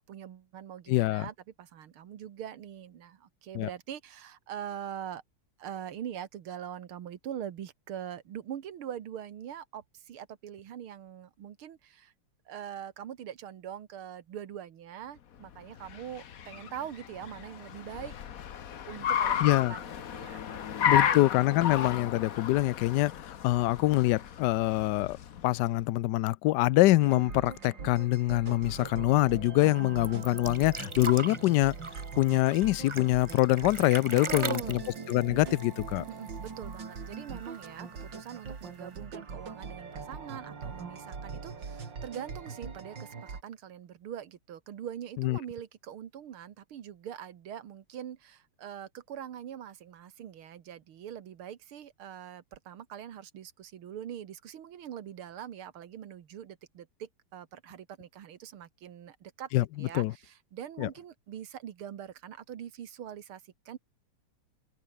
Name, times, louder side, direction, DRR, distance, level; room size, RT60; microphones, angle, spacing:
voice 1, 0.0-5.2 5.6-12.1 12.5-18.2 18.9-21.2 29.6-30.3 34.1-34.8 36.1-43.1 43.4-63.8, right 9 dB, 75° right, 2.2 m, -43 dB
voice 2, 0.9-1.3 3.5-3.7 19.4-19.7 20.8-25.2 25.4-31.8 32.2-34.8 35.1-36.0 45.2-45.4 59.5-60.1 60.8-60.9, left 17 dB, 85° left, 0.9 m, -25 dB
Car, 15.5-25.7, left 9 dB, 50° left, 1.3 m, -33 dB
sound 1, 27.0-43.4, right 5 dB, 55° right, 3.5 m, -42 dB
sound 2, 30.0-36.5 36.7-36.8 37.1-37.9 38.7-38.8, right 3 dB, 25° right, 0.6 m, -39 dB
omnidirectional pair, 2.4 m